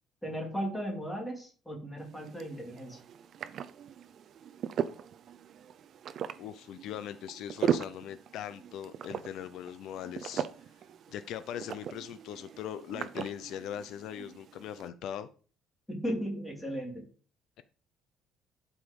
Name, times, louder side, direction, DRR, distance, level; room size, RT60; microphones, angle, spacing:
voice 1, 0.2-3.0 15.9-17.0, equal, 5° left, 0 dB, 2.6 m, -36 dB
sound 1, 2.0-14.9, right 8 dB, 45° right, 0.6 m, -38 dB
voice 2, 6.4-10.5 11.1-15.3, left 10 dB, 65° left, 12 dB, 0.6 m, -40 dB
11.5 x 5.0 x 5.3 m, 0.40 s
cardioid pair, 170°, 0 cm